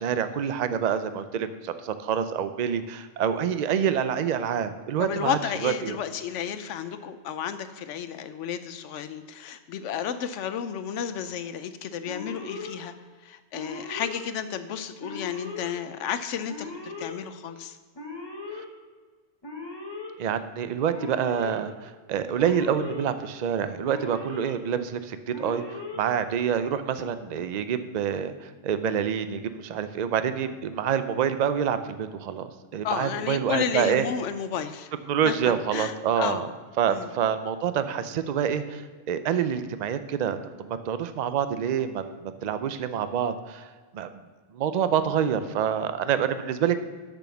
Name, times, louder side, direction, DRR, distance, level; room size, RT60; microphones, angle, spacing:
voice 1, 0.0-6.0 18.5-18.6 20.2-34.0 35.1-36.5 36.8-38.8 39.1-43.7 43.9-44.2 44.5-46.8, right 8 dB, 55° right, 11 dB, 0.4 m, -27 dB
voice 2, 5.0-12.9 13.2-17.8 32.8-34.9 35.3-36.4 36.9-37.1, left 8 dB, 75° left, 11 dB, 0.9 m, -32 dB
Alarm, 12.1-12.7 13.5-14.2 15.0-15.7 16.5-17.1 17.9-18.6 19.4-20.1 20.9-21.6 22.4-23.0 23.8-24.5 25.3-26.0, left 3 dB, 20° left, 1.2 m, -38 dB
6.9 x 6.1 x 6.8 m, 1.4 s
omnidirectional pair, 1.3 m